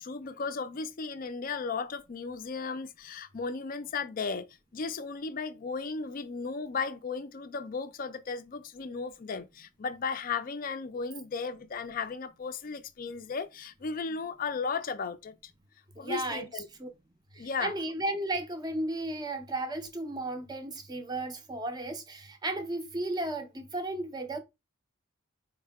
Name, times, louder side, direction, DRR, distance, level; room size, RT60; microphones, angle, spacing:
voice 1, 0.0-4.5 4.7-15.5 16.0-16.7 17.4-17.7, left 5 dB, 40° left, 0.4 m, -35 dB
voice 2, 16.0-16.9 17.3-24.4, right 2 dB, 20° right, 0.5 m, -34 dB
4.3 x 2.1 x 3.4 m
head